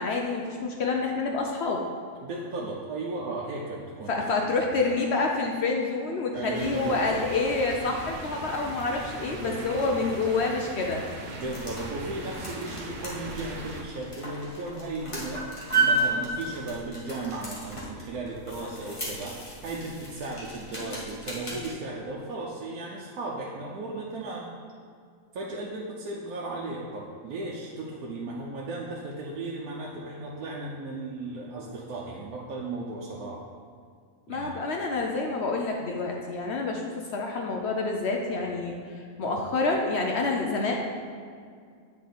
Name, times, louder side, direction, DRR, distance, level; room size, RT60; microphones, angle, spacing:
voice 1, 0.0-1.8 4.1-11.0 34.3-36.8 37.1-41.0, left 3 dB, 60° left, 1 dB, 0.7 m, -28 dB
voice 2, 2.2-4.3 4.7-4.8 6.3-7.5 9.2-10.1 11.3-15.5 15.8-24.5 25.3-33.4 34.3-34.5, right 2 dB, 85° right, -3 dB, 1.2 m, -36 dB
sound 1, 6.5-13.8, right 2 dB, 50° right, 0.5 m, -39 dB
sound 2, 11.2-21.7, right 2 dB, 25° left, 1.3 m, -33 dB
8.3 x 3.7 x 4.0 m, 2.2 s
omnidirectional pair, 1.5 m